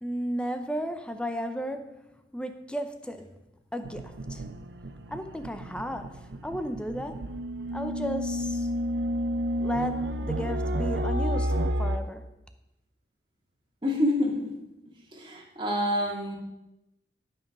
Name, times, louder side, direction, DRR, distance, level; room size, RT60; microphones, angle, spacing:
voice 1, 0.0-2.0 2.3-3.3 3.7-4.4 5.1-7.3 7.7-8.7 9.6-12.2, equal, 5° left, 8 dB, 0.7 m, -34 dB
sound 1, 3.8-12.0, equal, 65° right, 0.7 m, -30 dB
voice 2, 13.8-14.5 15.1-16.4, left 1 dB, 25° right, -1 dB, 2.1 m, -27 dB
12.5 x 6.0 x 5.5 m, 0.92 s
head